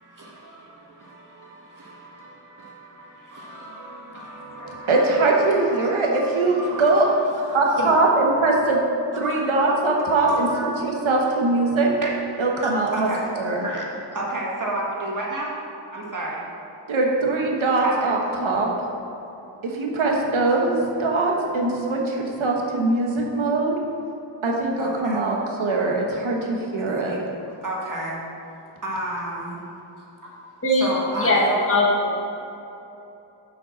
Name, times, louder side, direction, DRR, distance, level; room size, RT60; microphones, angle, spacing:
voice 1, 0.0-7.9 9.1-9.8 10.0-11.5 12.0-12.1 12.6-13.2 13.6-15.5 15.9-16.4 17.8-17.9 18.2-18.3 24.8-25.2 26.6-28.2 28.8-29.7 30.2-31.6, right 1 dB, 40° right, 1.8 m, -32 dB
voice 2, 4.9-7.1 7.5-8.8 9.2-11.9 12.4-13.1 13.3-13.7 16.9-18.7 19.8-23.7 24.4-27.2, right 2 dB, 80° right, 1.3 m, -22 dB
voice 3, 30.6-32.2, left 1 dB, 30° left, 1.4 m, -21 dB
7.3 x 5.3 x 6.3 m
wide cardioid pair, 75°, 47 cm